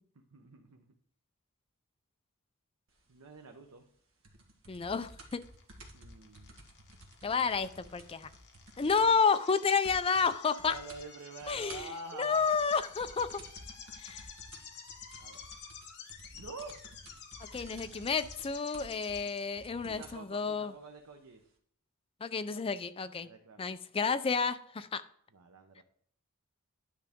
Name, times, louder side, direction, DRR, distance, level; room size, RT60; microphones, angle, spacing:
voice 1, 0.3-0.9 3.1-3.8 5.9-6.6 10.6-12.5 15.2-15.4 16.3-16.8 19.9-21.4 23.2-23.7 25.3-25.8, right 3 dB, 90° right, 4 dB, 0.9 m, -47 dB
sound 1, 4.2-9.3 9.5-9.6 9.8-10.3 10.6-11.0 11.4-20.2 21.0-21.1, right 1 dB, 65° right, 1.5 m, -53 dB
voice 2, 4.7-5.4 7.2-8.3 8.8-10.8 11.5-13.3 14.0-14.3 17.5-20.7 22.2-23.3 23.6-25.0 25.8-25.9, left 5 dB, 25° left, 11 dB, 0.4 m, -30 dB
sound 2, 5.1-19.4, left 7 dB, 50° left, 1.3 m, -51 dB
10.5 x 6.0 x 3.6 m, 0.64 s
head